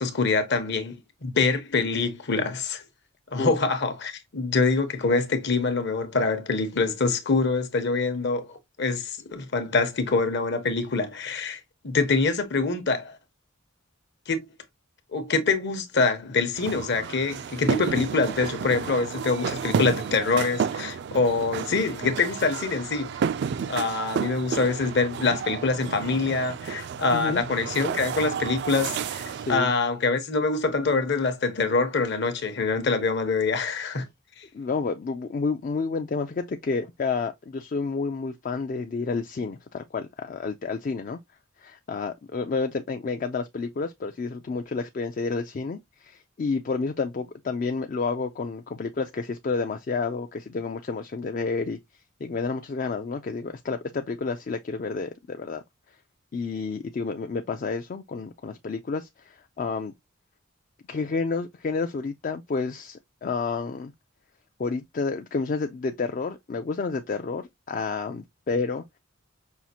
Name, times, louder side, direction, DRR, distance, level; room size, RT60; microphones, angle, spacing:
voice 1, 0.0-2.8 3.3-13.2 14.3-14.4 15.1-23.1 23.7-34.1 34.4-34.5, left 4 dB, 55° left, 0.8 m, -25 dB
sound 1, 16.6-29.6, right 7 dB, 55° right, 0.3 m, -31 dB
voice 2, 27.1-27.4 29.3-29.7 34.5-41.2 41.6-51.8 52.2-55.6 56.3-59.9 60.9-63.9 64.6-68.8, left 4 dB, 40° left, 0.3 m, -30 dB
5.6 x 2.4 x 2.8 m
head